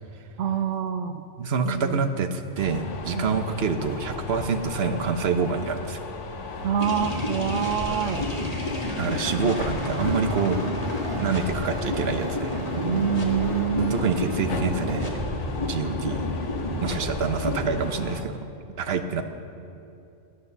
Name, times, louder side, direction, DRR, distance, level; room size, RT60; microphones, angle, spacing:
voice 1, 0.4-1.2 1.6-2.1 3.1-3.2 6.6-8.2 9.1-9.2 12.8-13.9, right 8 dB, 85° right, 7 dB, 1.1 m, -26 dB
voice 2, 1.4-6.0 9.0-10.6 11.2-12.6 13.9-15.2 15.7-16.2 16.8-18.4 18.8-19.2, right 5 dB, 60° right, 7 dB, 1.1 m, -27 dB
sound 1, 2.6-18.2, left 3 dB, 80° left, 1.3 m, -36 dB
sound 2, 6.8-17.9, left 2 dB, 30° left, 2.1 m, -31 dB
sound 3, 7.0-15.1, right 1 dB, 25° right, 1.1 m, -36 dB
15.0 x 11.5 x 6.8 m, 2.7 s
omnidirectional pair, 1.2 m